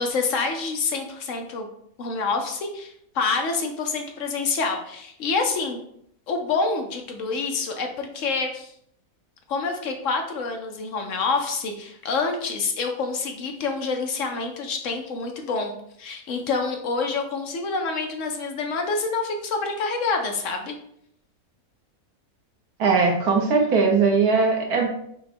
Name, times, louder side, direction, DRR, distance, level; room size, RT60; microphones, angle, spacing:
voice 1, 0.0-1.7 2.0-5.8 6.3-8.7 9.5-20.7, left 4 dB, 65° left, 4 dB, 0.9 m, -27 dB
voice 2, 22.8-24.9, right 4 dB, 85° right, 1 dB, 1.5 m, -20 dB
5.7 x 2.2 x 4.2 m, 0.70 s
omnidirectional pair, 1.6 m